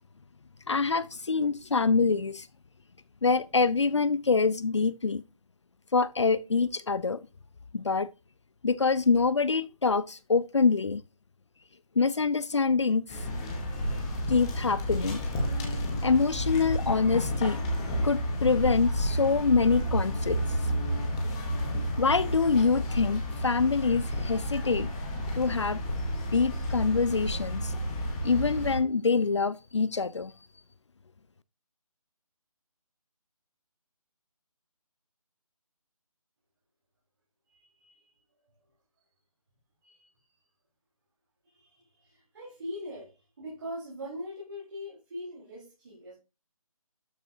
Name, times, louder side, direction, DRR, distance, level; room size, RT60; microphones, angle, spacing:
voice 1, 0.7-2.5 3.2-5.2 5.9-7.2 7.7-8.1 8.6-11.0 12.0-13.0 14.3-15.2 16.0-17.6 18.0-20.4 22.0-24.9 25.3-25.8 26.3-27.7 28.2-30.3, left 4 dB, 50° left, 0.6 m, -25 dB
sound 1, 13.1-28.8, equal, 10° left, 0.9 m, -31 dB
voice 2, 37.5-38.7 39.8-40.1 41.4-46.1, equal, 35° right, 4.4 m, -42 dB
12.5 x 6.3 x 2.8 m
figure-of-eight pair, 170°, 19 cm